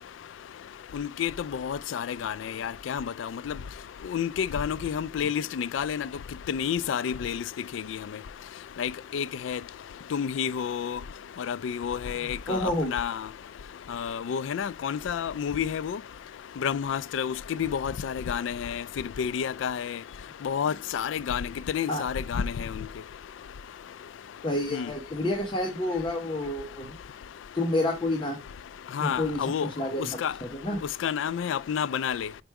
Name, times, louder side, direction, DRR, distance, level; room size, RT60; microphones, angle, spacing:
voice 1, 0.9-3.5 4.1-6.1 6.5-7.4 7.7-8.0 8.8-9.6 10.1-11.0 11.5-13.2 13.9-16.0 16.6-18.8 19.2-20.0 20.4-22.7 24.7-24.9 29.0-29.7 30.2-30.3 31.0-32.3, left 7 dB, 80° left, 0.3 m, -30 dB
voice 2, 12.5-12.9 21.9-22.1 24.4-26.9 27.5-28.4 29.0-30.8, left 1 dB, 25° left, 0.9 m, -29 dB
5.1 x 4.4 x 4.6 m
head